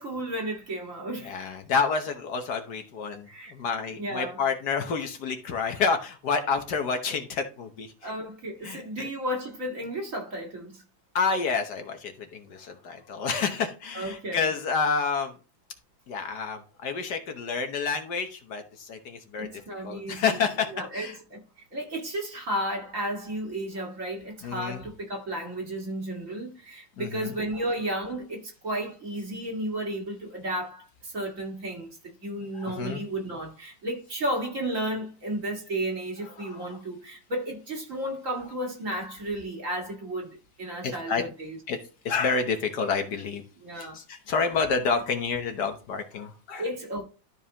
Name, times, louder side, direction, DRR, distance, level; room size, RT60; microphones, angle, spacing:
voice 1, 0.0-1.3 3.3-3.5 4.0-4.4 8.0-10.8 13.9-14.5 19.4-20.4 20.7-21.4 21.7-41.6 43.6-44.0 46.6-47.0, right 1 dB, 40° right, 2.2 m, -33 dB
voice 2, 1.2-8.1 8.6-9.1 11.1-15.4 16.1-19.5 19.8-21.2 24.4-24.8 27.0-27.3 32.5-33.0 36.4-36.8 40.8-41.2 41.7-41.8 42.0-43.4 43.7-46.6, left 5 dB, 60° left, 1.4 m, -29 dB
12.5 x 5.3 x 2.9 m
omnidirectional pair, 2.1 m